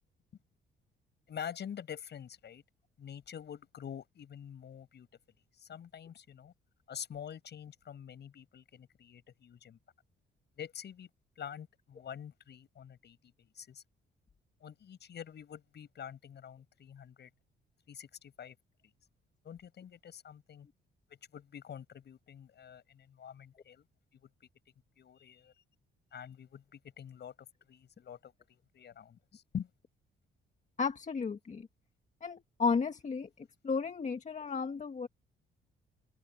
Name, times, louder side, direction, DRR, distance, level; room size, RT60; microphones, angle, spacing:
voice 1, 1.3-2.6 3.0-5.1 5.6-6.5 6.9-9.8 10.6-11.1 11.4-13.8 14.6-17.3 17.9-18.6 19.4-20.7 21.3-23.8 25.0-25.5 26.1-27.3 27.7-29.7, left 8 dB, 60° left, 7.3 m, -46 dB
voice 2, 30.8-31.7 32.2-33.3 33.6-35.1, left 5 dB, 35° left, 1.8 m, -33 dB
cardioid pair, 90°, 20 cm